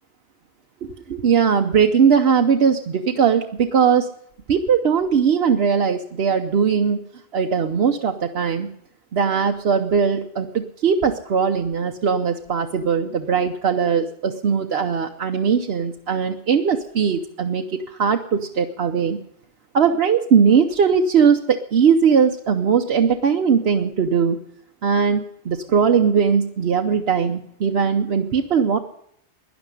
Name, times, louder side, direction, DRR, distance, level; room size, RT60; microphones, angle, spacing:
voice 1, 0.8-4.1 4.5-7.0 7.3-8.7 9.1-19.2 19.7-24.4 24.8-28.8, right 6 dB, 65° right, 3 dB, 1.1 m, -19 dB
12.5 x 10.5 x 9.8 m, 0.71 s
omnidirectional pair, 1.1 m